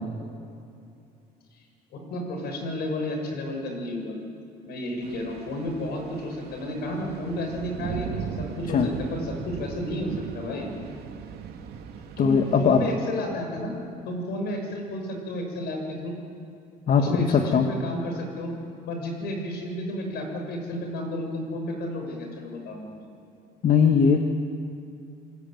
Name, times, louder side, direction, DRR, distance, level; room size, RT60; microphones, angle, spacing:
voice 1, 1.9-4.1 4.7-10.7 12.2-13.7 14.1-16.2 17.0-18.5 18.9-23.0, left 1 dB, 75° left, 3 dB, 7.1 m, -32 dB
sound 1, 5.0-12.9, right 7 dB, 70° right, 2.5 m, -38 dB
voice 2, 12.2-12.8 16.9-17.7 23.6-24.2, left 6 dB, 50° left, 4 dB, 1.8 m, -20 dB
27.0 x 21.0 x 9.3 m, 2.6 s
cardioid pair, 110°, 17 cm